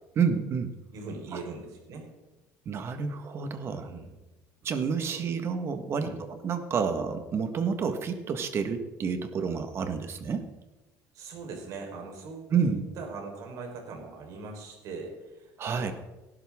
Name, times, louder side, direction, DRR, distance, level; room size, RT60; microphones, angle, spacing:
voice 1, 0.1-0.7 1.3-1.4 2.6-3.9 4.6-10.5 12.5-12.8 15.6-15.9, right 6 dB, 40° right, 8 dB, 1.5 m, -29 dB
voice 2, 0.9-2.1 3.8-4.1 5.1-5.2 6.0-6.2 11.1-15.9, right 4 dB, 65° right, 1 dB, 4.3 m, -41 dB
18.0 x 11.5 x 3.7 m, 1.1 s
cardioid pair, 135°, 7 cm